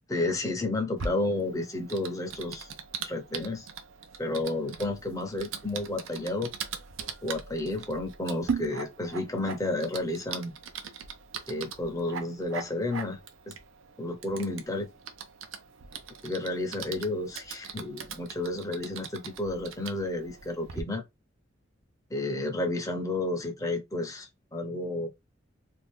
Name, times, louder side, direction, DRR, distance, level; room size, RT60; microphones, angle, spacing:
voice 1, 0.1-2.7 3.0-3.7 4.2-6.5 7.2-10.5 11.5-13.2 13.5-13.6 14.0-14.9 16.2-21.0 22.1-25.1, left 2 dB, 15° left, 0.7 m, -31 dB
Typing, 1.0-20.8, right 6 dB, 90° right, 0.6 m, -40 dB
2.6 x 2.3 x 3.4 m
head